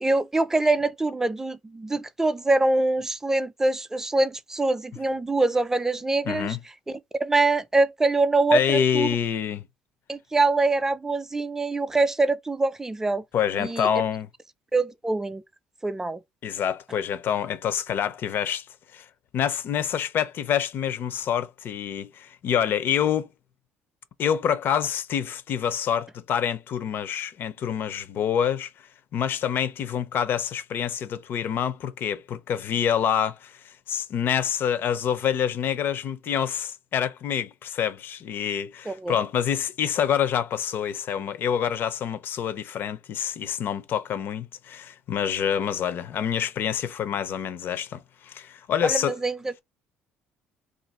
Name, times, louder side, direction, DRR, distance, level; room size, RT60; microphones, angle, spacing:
voice 1, 0.0-6.6 6.9-9.1 10.1-13.2 13.6-13.9 14.7-15.4 15.8-16.2 38.9-39.1 48.8-49.6, right 2 dB, 10° right, 0.4 m, -24 dB
voice 2, 6.3-6.6 8.5-9.6 13.3-14.3 16.4-18.7 18.9-19.1 19.3-23.3 24.2-28.7 29.1-49.2, left 8 dB, 55° left, 0.5 m, -27 dB
2.5 x 2.4 x 4.1 m
cardioid pair, 105°, 4 cm